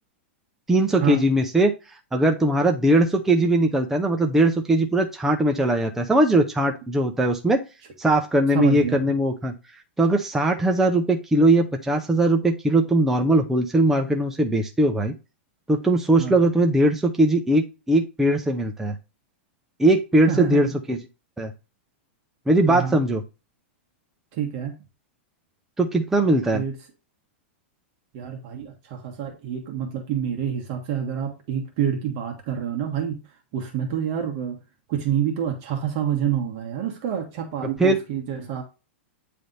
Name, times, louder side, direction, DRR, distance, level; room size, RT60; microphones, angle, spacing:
voice 1, 0.7-1.7 2.1-7.6 8.0-9.5 10.0-15.1 15.7-18.9 19.8-21.0 21.4-21.5 22.5-23.2 25.8-26.6 37.8-38.0, right 1 dB, 5° right, 0.6 m, -20 dB
voice 2, 8.5-9.1 16.2-16.4 20.3-20.7 22.7-23.0 24.3-24.7 26.5-26.8 28.1-33.2 33.5-34.6 34.9-38.6, right 9 dB, 40° right, 1.5 m, -27 dB
9.0 x 3.4 x 4.0 m
supercardioid pair, 150°, 7 cm